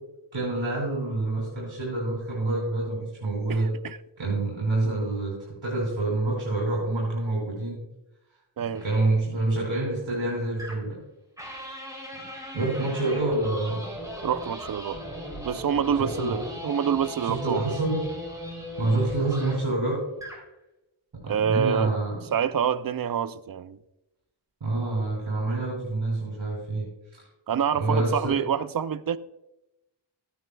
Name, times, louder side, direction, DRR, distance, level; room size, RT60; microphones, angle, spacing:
voice 1, 0.3-3.7 4.2-7.8 8.8-11.0 12.5-13.9 16.0-16.4 17.2-18.0 18.8-20.0 21.2-22.2 24.6-26.9 27.7-28.4, right 2 dB, 65° right, 2.8 m, -27 dB
voice 2, 3.5-4.0 8.6-8.8 14.2-15.0 15.4-17.8 21.2-21.9 22.3-23.8 27.5-29.2, right 8 dB, 45° right, 0.5 m, -27 dB
sound 1, 8.8-9.0 10.6-11.0 11.4-19.7 20.1-20.5, equal, 5° right, 3.3 m, -38 dB
13.5 x 9.2 x 2.3 m
wide cardioid pair, 80°, 48 cm